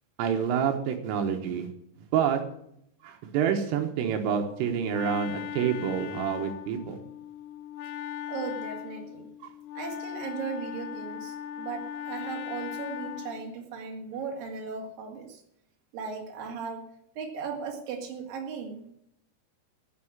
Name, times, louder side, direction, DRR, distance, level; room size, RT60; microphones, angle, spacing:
voice 1, 0.2-1.7 2.1-2.4 3.0-7.0 9.4-9.5, right 8 dB, 80° right, 4 dB, 3.6 m, -28 dB
Wind instrument woodwind instrument, 4.4-13.5, left 10 dB, 85° left, 3.3 m, -38 dB
voice 2, 8.3-9.3 9.7-15.4 15.9-16.8 17.1-18.9, right 5 dB, 50° right, 1 dB, 3.4 m, -37 dB
16.5 x 5.8 x 8.5 m, 0.75 s
omnidirectional pair, 5.8 m